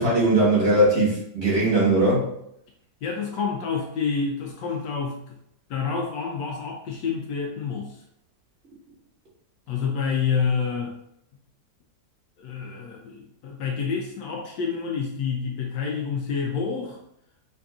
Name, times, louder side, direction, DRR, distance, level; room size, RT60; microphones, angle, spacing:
voice 1, 0.0-2.3, right 1 dB, 40° right, -6 dB, 1.4 m, -20 dB
voice 2, 3.0-5.4 5.7-8.0 9.7-11.0 12.4-17.0, left 5 dB, 80° left, -1 dB, 1.2 m, -28 dB
5.3 x 2.6 x 2.3 m, 0.75 s
omnidirectional pair, 1.8 m